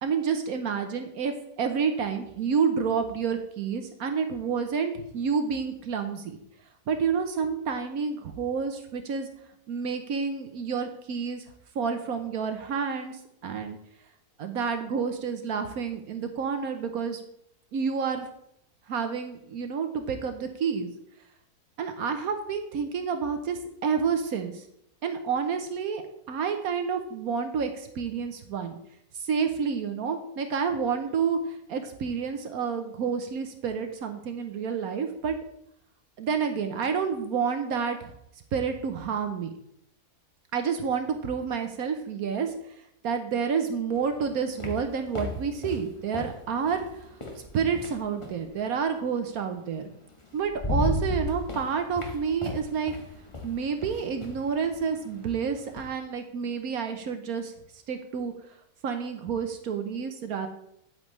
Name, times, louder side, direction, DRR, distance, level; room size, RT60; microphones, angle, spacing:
voice 1, 0.0-6.4 6.9-9.3 9.7-11.4 11.7-13.8 14.4-17.2 17.7-18.3 18.9-20.9 21.8-24.6 25.0-28.8 29.1-35.3 36.2-38.1 38.5-39.5 40.5-42.5 43.0-47.1 47.5-49.9 50.3-52.9 53.4-58.3 58.8-60.5, right 6 dB, 70° right, 7 dB, 1.2 m, -29 dB
sound 1, 43.9-48.5 49.7-49.8 50.2-55.9, left 1 dB, 20° left, 1.2 m, -35 dB
9.4 x 8.5 x 3.1 m, 0.75 s
omnidirectional pair, 1.7 m